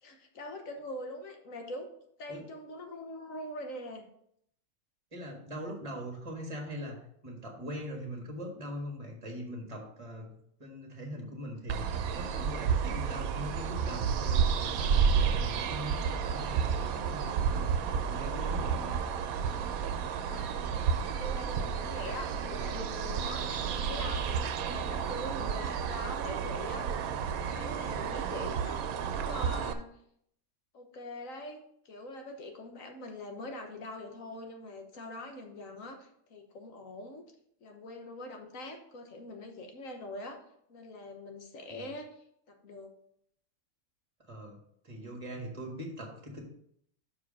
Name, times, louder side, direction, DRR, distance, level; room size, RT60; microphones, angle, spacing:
voice 1, 0.0-1.9 2.2-4.0 20.1-20.5 21.2-26.9 27.2-29.9 30.7-37.2 37.6-40.4 40.7-42.9, left 1 dB, 70° left, 3 dB, 1.5 m, -43 dB
voice 2, 5.1-10.3 10.6-18.9 41.7-41.9 44.3-44.6 44.8-46.4, equal, 25° right, 1 dB, 1.6 m, -41 dB
sound 1, 11.7-29.7, right 7 dB, 90° right, 1.1 m, -31 dB
5.9 x 4.8 x 6.1 m, 0.70 s
omnidirectional pair, 1.5 m